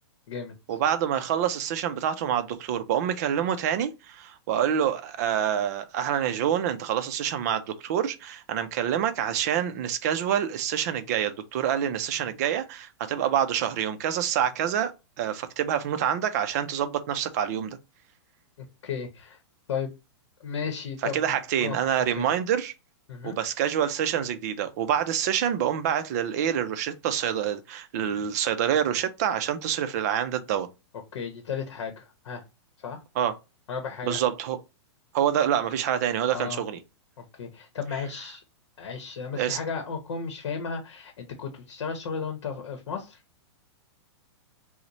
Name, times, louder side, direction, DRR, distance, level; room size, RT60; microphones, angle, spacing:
voice 1, 0.7-14.9 15.2-17.8 21.0-22.7 23.2-30.7 33.2-33.3 34.0-34.6 35.1-36.8 39.3-39.6, right 9 dB, 35° right, 0.4 m, -27 dB
voice 2, 18.6-19.4 19.7-19.9 20.4-21.8 22.1-22.3 23.1-23.4 31.1-32.4 32.8-33.0 33.7-34.2 36.3-36.6 37.2-38.4 38.8-43.2, left 6 dB, 75° left, 0.8 m, -34 dB
3.9 x 2.1 x 2.9 m
supercardioid pair, 165°, 15 cm